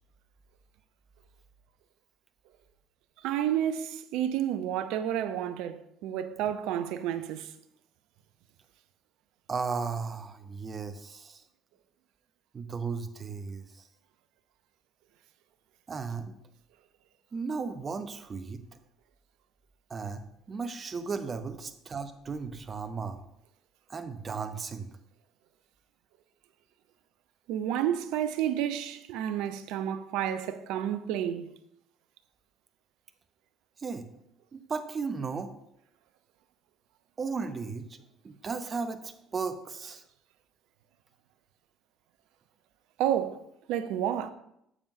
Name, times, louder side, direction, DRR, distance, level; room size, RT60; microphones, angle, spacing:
voice 1, 3.2-7.5 27.5-31.5 43.0-43.4 43.7-44.3, right 10 dB, 65° right, 0.5 m, -30 dB
voice 2, 9.5-11.4 12.5-13.8 15.9-16.4 17.3-18.6 19.9-23.2 23.9-24.9 33.8-34.1 34.5-35.5 37.2-38.0 38.2-40.0, right 5 dB, 35° right, 0.8 m, -35 dB
9.9 x 7.1 x 2.7 m
hypercardioid pair, 55°, 0 cm